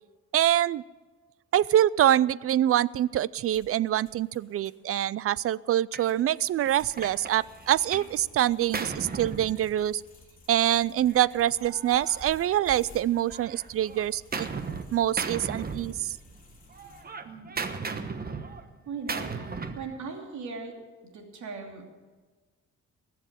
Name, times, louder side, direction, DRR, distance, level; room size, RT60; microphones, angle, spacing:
voice 1, 0.3-0.8 1.5-10.0 10.5-14.5 14.9-16.2, right 12 dB, 50° right, 22 dB, 0.4 m, -25 dB
sound 1, 3.5-17.0, left 3 dB, 30° left, 2.9 m, -54 dB
Gunshot gunfire, 5.9-6.1 6.6-8.2 8.4-10.1 11.1-12.9 13.3-14.9 15.2-16.4 16.7-19.9, right 4 dB, 30° right, 1.2 m, -37 dB
voice 2, 18.9-19.5 19.7-20.7 21.1-21.8, right 4 dB, 70° right, 2 dB, 2.9 m, -38 dB
20.0 x 7.7 x 7.6 m, 1.3 s
cardioid pair, 90°, 30 cm